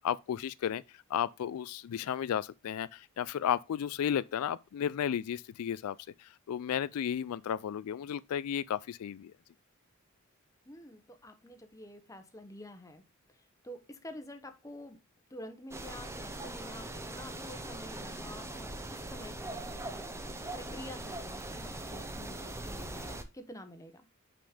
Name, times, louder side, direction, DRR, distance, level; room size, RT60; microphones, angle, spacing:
voice 1, 0.0-9.3, left 9 dB, 80° left, 0.3 m, -34 dB
voice 2, 10.6-13.0 13.6-15.0 15.3-20.1 20.5-24.1, left 1 dB, 15° left, 0.9 m, -48 dB
sound 1, 15.7-23.2, right 2 dB, 10° right, 0.7 m, -41 dB
5.7 x 5.2 x 4.9 m
head